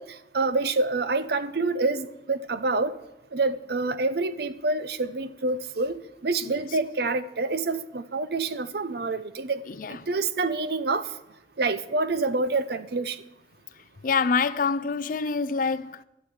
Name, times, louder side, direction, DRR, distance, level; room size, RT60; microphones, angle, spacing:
voice 1, 0.0-2.9 3.3-9.6 9.9-11.1 11.6-13.2, right 3 dB, 60° right, 0.7 m, -27 dB
voice 2, 9.7-10.0 14.0-16.0, left 5 dB, 45° left, 0.4 m, -26 dB
12.5 x 7.2 x 7.9 m
head